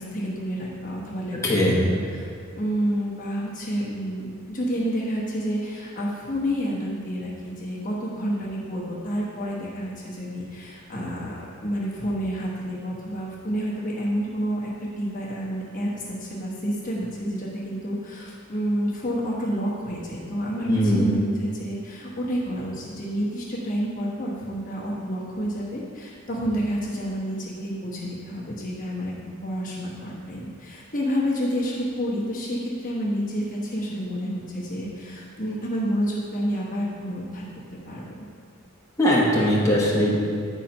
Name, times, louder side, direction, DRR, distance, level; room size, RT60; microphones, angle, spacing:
voice 1, 0.0-1.9 2.1-2.3 2.6-7.3 7.6-37.5 37.8-38.2, equal, 40° left, -5 dB, 1.1 m, -29 dB
voice 2, 1.3-1.8 20.6-21.2 39.0-40.2, equal, 15° left, -6 dB, 1.2 m, -20 dB
9.0 x 4.4 x 5.3 m, 2.2 s
head